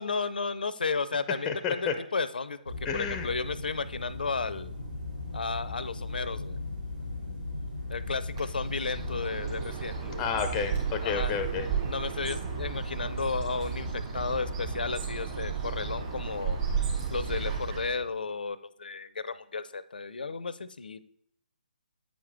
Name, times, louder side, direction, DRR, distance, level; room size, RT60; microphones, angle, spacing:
voice 1, 0.0-4.7 5.3-6.6 7.9-10.3 11.0-11.3 11.8-16.6 17.1-21.0, left 4 dB, 75° left, 15 dB, 0.5 m, -33 dB
voice 2, 1.5-1.9 2.8-3.3 10.2-11.7, left 6 dB, 15° left, 8 dB, 0.5 m, -30 dB
sound 1, 2.6-9.2, left 2 dB, 85° right, 2.9 m, -37 dB
Bird, 8.3-18.0, right 5 dB, 35° right, 2.5 m, -33 dB
8.8 x 5.1 x 3.4 m, 0.70 s
figure-of-eight pair, 140°, 5 cm